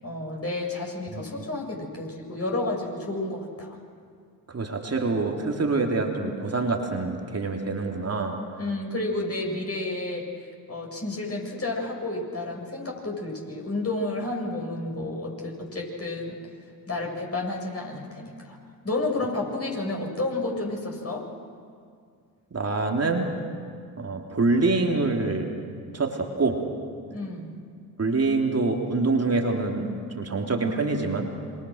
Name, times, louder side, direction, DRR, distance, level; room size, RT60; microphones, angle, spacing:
voice 1, 0.0-3.8 8.6-16.4 16.9-18.6 18.8-21.2 27.1-27.6, left 2 dB, 30° left, 0 dB, 7.8 m, -31 dB
voice 2, 4.5-8.4 22.5-23.3 24.0-25.5 25.9-26.6 28.0-31.3, right 3 dB, 30° right, 2 dB, 3.4 m, -25 dB
27.0 x 26.0 x 6.6 m, 2.2 s
figure-of-eight pair, 45°, 49 cm